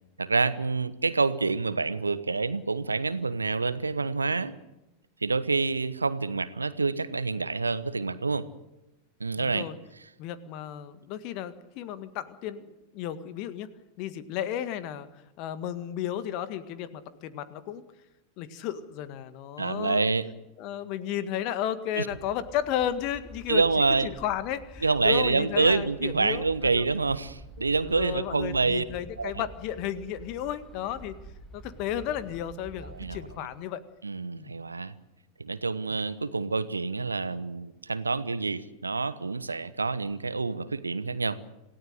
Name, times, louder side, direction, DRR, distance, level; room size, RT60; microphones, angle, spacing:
voice 1, 0.2-4.5 5.2-8.5 9.2-9.7 19.6-20.3 22.0-22.1 23.5-24.1 24.8-28.8 29.2-29.3 32.9-33.3 34.0-34.9 35.4-41.4, right 4 dB, 80° right, 15 dB, 1.1 m, -27 dB
voice 2, 9.4-9.8 10.2-13.7 14.0-15.1 15.4-17.8 18.4-20.1 20.6-23.6 24.0-26.9 27.6-31.1 31.5-33.8 34.3-34.6, left 10 dB, 40° left, 13 dB, 1.8 m, -33 dB
sound 1, 22.1-33.4, equal, 5° left, 7.3 m, -48 dB
27.5 x 17.5 x 8.0 m, 0.96 s
figure-of-eight pair, 90°, 0 cm